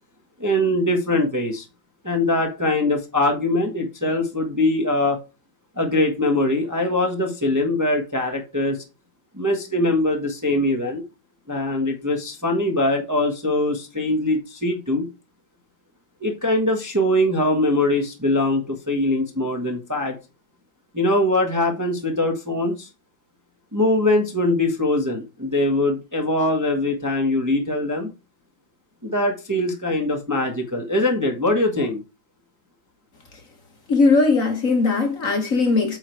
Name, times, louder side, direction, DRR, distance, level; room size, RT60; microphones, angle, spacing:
voice 1, 0.4-1.6 2.0-5.2 5.8-8.8 9.3-11.0 11.5-15.1 16.2-20.1 20.9-22.9 23.7-28.1 29.0-32.0, left 1 dB, 10° right, 1.2 m, -22 dB
voice 2, 33.9-36.0, left 3 dB, 45° left, 1.7 m, -19 dB
8.8 x 4.0 x 4.6 m
omnidirectional pair, 2.1 m